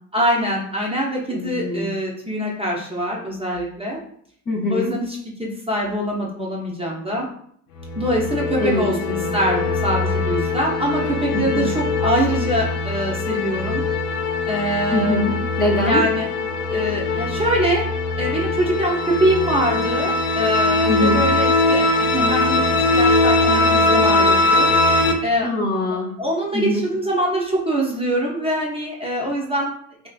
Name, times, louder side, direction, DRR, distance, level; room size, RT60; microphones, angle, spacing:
voice 1, 0.1-4.0 4.7-7.3 7.9-13.8 14.5-15.4 15.8-16.3 16.7-17.8 18.2-22.6 22.9-24.7 25.2-25.5 26.2-29.7, equal, 15° right, -4 dB, 0.8 m, -23 dB
voice 2, 1.3-1.9 4.5-4.9 8.6-9.3 11.3-11.7 14.9-16.0 20.9-21.2 25.4-26.1 26.5-26.8, left 1 dB, 20° left, -3 dB, 0.8 m, -23 dB
sound 1, 7.8-25.1, left 3 dB, 90° left, 0.6 m, -21 dB
2.8 x 2.7 x 2.4 m, 0.63 s
hypercardioid pair, 70°, 44 cm